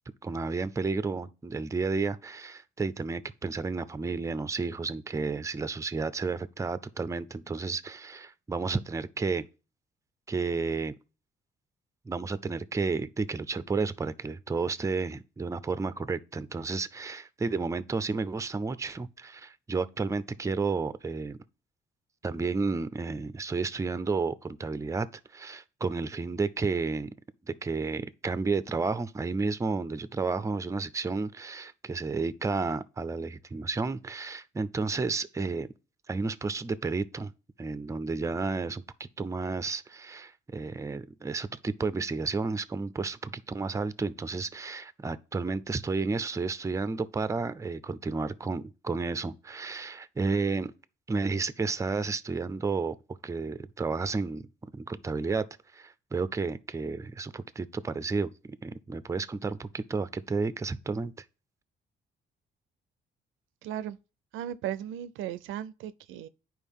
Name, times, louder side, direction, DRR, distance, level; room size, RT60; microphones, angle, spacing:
voice 1, 0.2-9.5 10.3-10.9 12.1-21.4 22.2-25.1 25.3-27.1 27.5-35.7 36.1-37.3 37.6-50.7 51.1-53.0 53.2-54.5 54.7-55.4 55.7-58.3 58.6-61.2, right 4 dB, 15° right, 0.4 m, -32 dB
voice 2, 63.6-64.0 64.3-66.3, right 11 dB, 85° right, 0.4 m, -36 dB
9.9 x 4.6 x 3.6 m
cardioid pair, 90°, 20 cm